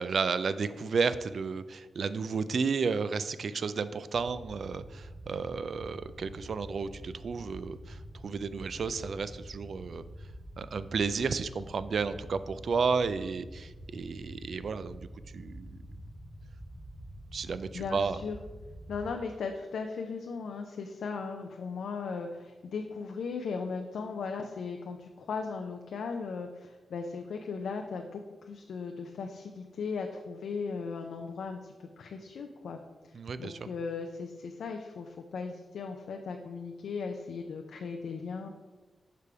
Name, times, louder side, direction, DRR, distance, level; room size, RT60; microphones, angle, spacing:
voice 1, 0.0-10.0 10.6-15.1 15.3-15.8 17.3-18.2 33.1-33.6, right 5 dB, 65° right, 13 dB, 0.3 m, -32 dB
sound 1, 4.1-19.2, equal, 5° right, 1.5 m, -47 dB
voice 2, 17.7-18.4 18.9-38.5, left 5 dB, 80° left, 4 dB, 0.4 m, -37 dB
6.6 x 3.4 x 4.8 m, 1.2 s
cardioid pair, 50°, 0 cm